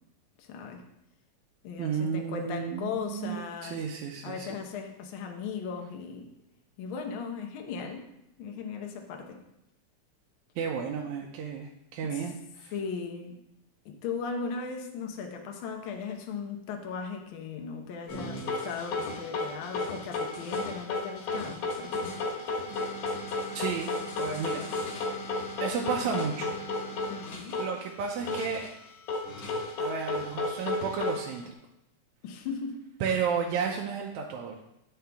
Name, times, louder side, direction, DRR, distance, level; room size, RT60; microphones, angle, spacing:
voice 1, 0.4-0.8 1.6-3.8 4.2-6.3 6.8-8.0 8.4-9.4 12.1-12.2 12.7-13.4 13.8-22.1 27.1-27.6 32.2-32.8, left 5 dB, 85° left, 2 dB, 1.1 m, -37 dB
voice 2, 1.8-4.5 10.6-12.7 23.5-23.9 24.2-24.7 25.6-26.5 27.6-28.7 29.8-31.5 33.0-34.6, right 6 dB, 80° right, 0 dB, 1.9 m, -32 dB
sound 1, 18.1-27.7 28.0-28.7 29.1-31.5, left 3 dB, 70° left, 2.2 m, -33 dB
8.4 x 5.5 x 3.4 m, 0.83 s
omnidirectional pair, 3.5 m